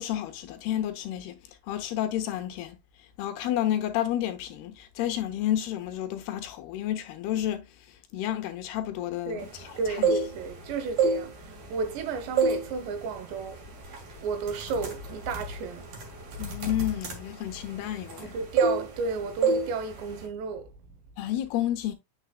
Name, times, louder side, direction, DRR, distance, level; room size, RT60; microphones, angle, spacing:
voice 1, 0.0-1.4 1.7-2.8 3.2-7.7 8.1-10.1 16.4-18.3 21.2-21.9, left 12 dB, 75° left, 2.6 m, -30 dB
voice 2, 9.3-13.6 14.2-16.0 18.2-20.7, right 4 dB, 80° right, 3.5 m, -33 dB
sound 1, 9.8-10.6 10.9-12.0 12.4-12.7 13.1-13.3 13.9-14.1 14.4-18.3 18.6-19.1 19.4-19.7 20.0-20.3, right 4 dB, 50° right, 2.8 m, -27 dB
8.0 x 6.5 x 2.3 m
omnidirectional pair, 5.0 m